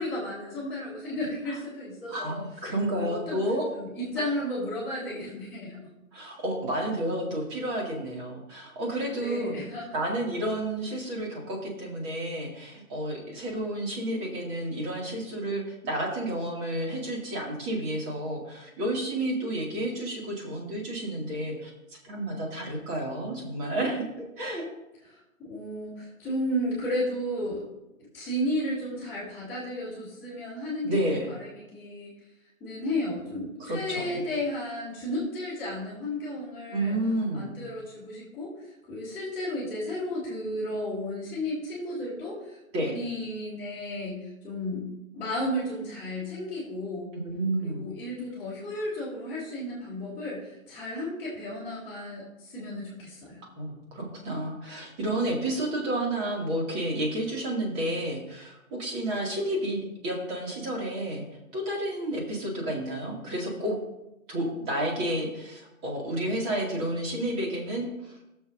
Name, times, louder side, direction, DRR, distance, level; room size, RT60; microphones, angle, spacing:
voice 1, 0.0-2.4 3.0-3.4 3.7-5.8 9.2-9.9 25.0-25.2 25.5-27.6 28.0-31.0 31.3-32.1 32.6-37.0 37.3-44.9 45.1-47.1 47.6-53.4, left 1 dB, 5° left, -13 dB, 2.8 m, -33 dB
voice 2, 2.1-3.7 4.2-4.3 6.1-9.6 9.9-21.7 22.0-24.7 30.8-31.3 33.6-34.2 36.7-37.5 42.7-42.9 47.1-47.8 53.6-61.2 61.5-63.8 64.3-68.2, right 1 dB, 20° right, -1 dB, 2.2 m, -31 dB
20.0 x 6.9 x 2.6 m, 0.92 s
hypercardioid pair, 150°, 42 cm